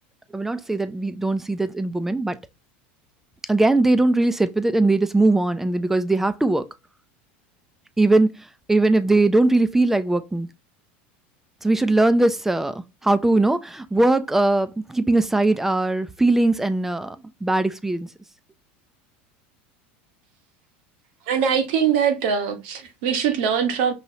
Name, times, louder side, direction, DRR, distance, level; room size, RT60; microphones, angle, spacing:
voice 1, 0.3-2.4 3.5-6.6 8.0-8.4 8.7-10.5 11.6-17.2 17.4-18.1, right 2 dB, 5° right, 0.5 m, -20 dB
voice 2, 21.3-23.9, right 7 dB, 70° right, 1.3 m, -22 dB
5.5 x 3.0 x 2.8 m
supercardioid pair, 125°, 6 cm